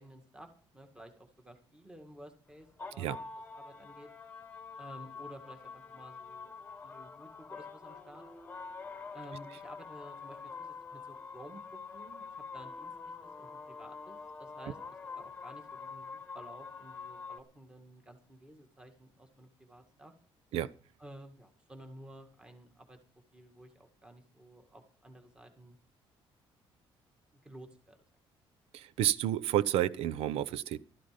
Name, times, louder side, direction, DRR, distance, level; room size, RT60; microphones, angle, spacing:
voice 1, 0.0-3.3 3.5-4.1 4.8-8.2 9.1-14.8 15.2-20.1 21.0-23.0 23.3-25.8 27.4-28.0, right 1 dB, 10° right, 2.0 m, -53 dB
sound 1, 2.5-17.4, left 5 dB, 15° left, 1.3 m, -46 dB
voice 2, 28.7-30.8, right 12 dB, 85° right, 0.8 m, -30 dB
14.5 x 13.0 x 5.2 m
cardioid pair, 170°, 10 cm